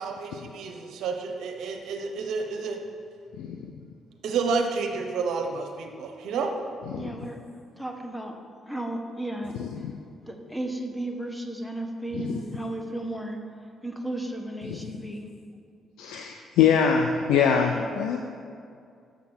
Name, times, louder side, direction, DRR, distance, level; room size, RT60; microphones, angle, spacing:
voice 1, 0.0-2.8 4.2-6.6, right 4 dB, 75° right, 3 dB, 0.7 m, -30 dB
voice 2, 6.9-7.4 7.8-8.3 8.7-9.6 10.2-13.4 13.8-15.3 17.7-17.9, right 1 dB, 5° left, 2 dB, 1.1 m, -34 dB
voice 3, 9.6-9.9 12.1-12.3 16.0-18.2, left 7 dB, 85° left, 4 dB, 0.4 m, -23 dB
6.8 x 5.9 x 6.2 m, 2.3 s
supercardioid pair, 60°, 0 cm